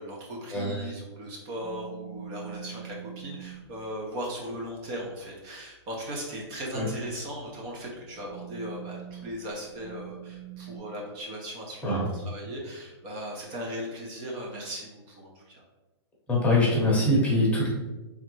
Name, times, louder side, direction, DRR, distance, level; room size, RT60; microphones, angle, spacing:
voice 1, 0.0-15.6, equal, 35° right, -2 dB, 0.9 m, -38 dB
sound 1, 1.6-3.7 6.7-7.1 7.9-10.8, right 10 dB, 15° right, 1.5 m, -43 dB
voice 2, 16.3-17.7, left 1 dB, 10° left, -5 dB, 1.0 m, -23 dB
3.6 x 3.4 x 3.2 m, 1.1 s
hypercardioid pair, 135°, 15 cm